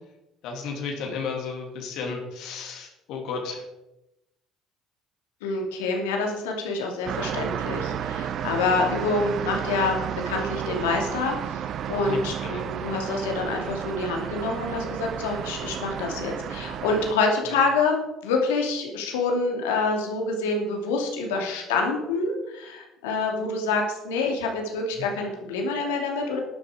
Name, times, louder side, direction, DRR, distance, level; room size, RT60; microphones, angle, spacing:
voice 1, 0.4-3.6 12.0-12.7 17.5-17.6 25.0-25.1, left 5 dB, 70° left, 2 dB, 2.6 m, -33 dB
voice 2, 5.4-10.0 10.3-11.6 11.9-26.4, left 3 dB, 85° left, 1 dB, 2.6 m, -27 dB
sound 1, 7.1-17.1, right 9 dB, 60° right, 0.8 m, -32 dB
12.0 x 9.8 x 4.9 m, 0.93 s
hypercardioid pair, 65°, 0 cm